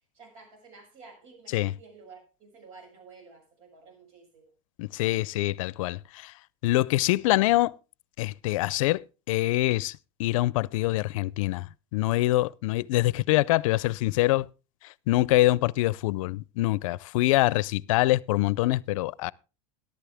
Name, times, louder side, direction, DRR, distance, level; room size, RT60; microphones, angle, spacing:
voice 1, 0.1-4.5, right 4 dB, 75° right, 6.9 m, -51 dB
voice 2, 4.8-6.3 6.6-7.7 8.2-9.0 9.3-14.5 15.1-19.3, left 17 dB, 80° left, 0.5 m, -25 dB
13.5 x 11.5 x 3.5 m
supercardioid pair, 130°, 17 cm